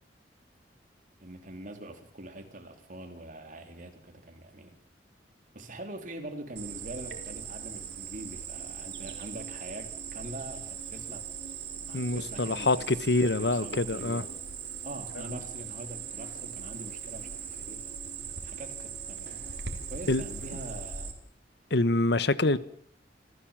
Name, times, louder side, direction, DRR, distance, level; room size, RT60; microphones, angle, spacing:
voice 1, 1.2-4.8 5.5-11.2 11.9-14.4 14.8-17.9 18.4-19.6 19.9-21.1 22.4-22.6, right 1 dB, 50° right, 3.6 m, -44 dB
Cricket, 6.6-21.1, right 7 dB, 65° right, 3.8 m, -40 dB
voice 2, 11.9-14.2 20.1-20.2 21.7-22.6, left 2 dB, 70° left, 1.1 m, -26 dB
28.0 x 15.5 x 7.4 m
head